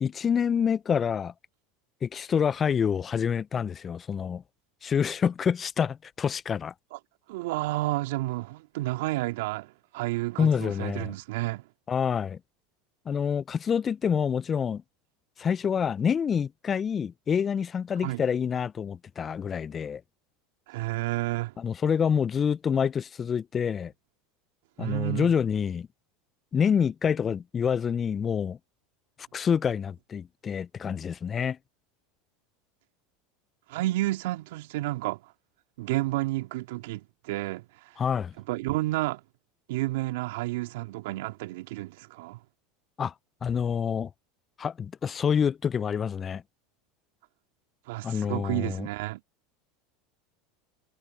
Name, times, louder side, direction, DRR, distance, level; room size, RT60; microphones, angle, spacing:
voice 1, 0.0-1.3 2.0-4.4 4.8-6.7 10.4-11.1 11.9-12.4 13.1-14.8 15.4-20.0 21.6-23.9 24.8-25.9 26.5-28.6 29.3-31.6 38.0-38.3 43.0-43.1 43.4-44.1 44.6-46.4 48.0-48.9, left 7 dB, 30° left, 0.5 m, -27 dB
voice 2, 7.3-11.6 18.0-18.2 20.7-21.5 24.8-25.3 33.7-35.3 35.8-37.9 38.4-39.2 39.7-42.4 47.9-49.2, right 18 dB, 70° right, 2.3 m, -31 dB
hypercardioid pair, 85°, 0 cm